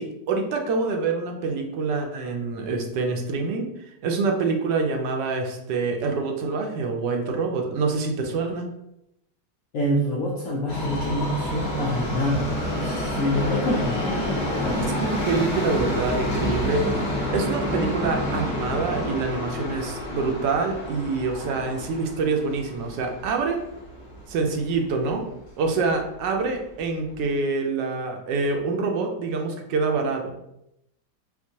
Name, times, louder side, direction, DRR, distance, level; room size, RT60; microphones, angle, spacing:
voice 1, 0.0-8.7 14.8-16.9 17.3-23.6 24.3-25.2 25.6-30.3, right 4 dB, 75° right, 3 dB, 1.2 m, -26 dB
voice 2, 9.7-14.9, left 1 dB, 70° left, -4 dB, 0.7 m, -26 dB
Subway metro underground, 10.7-24.8 25.1-25.2 26.0-26.1 26.4-26.5 27.1-27.2, equal, 45° left, 0.9 m, -29 dB
4.3 x 2.2 x 2.7 m, 0.82 s
omnidirectional pair, 2.0 m